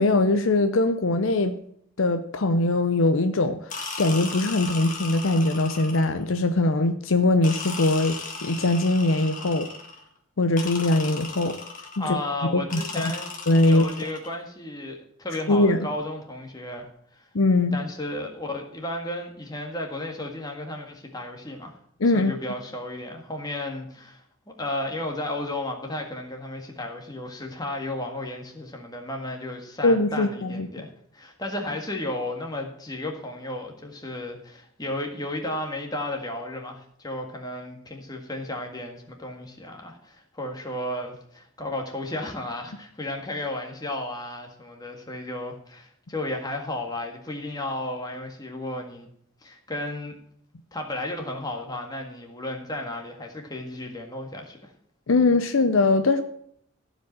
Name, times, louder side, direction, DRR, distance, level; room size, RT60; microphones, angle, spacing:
voice 1, 0.0-1.6 2.0-9.7 10.4-11.6 12.0-12.2 12.5-13.1 13.5-13.8 15.5-15.8 17.3-17.8 22.0-22.3 29.8-30.7 55.1-56.2, left 2 dB, 60° left, 9 dB, 0.6 m, -21 dB
sound 1, 3.7-6.3 7.4-10.0 10.6-12.1 12.7-14.3, left 4 dB, 35° left, 1.7 m, -36 dB
voice 2, 12.0-13.3 13.6-16.9 17.1-17.3 17.7-21.7 22.1-24.2 24.6-49.1 49.4-50.1 50.7-54.7, left 1 dB, 20° left, 2 dB, 1.7 m, -33 dB
15.0 x 5.2 x 7.5 m, 0.68 s
head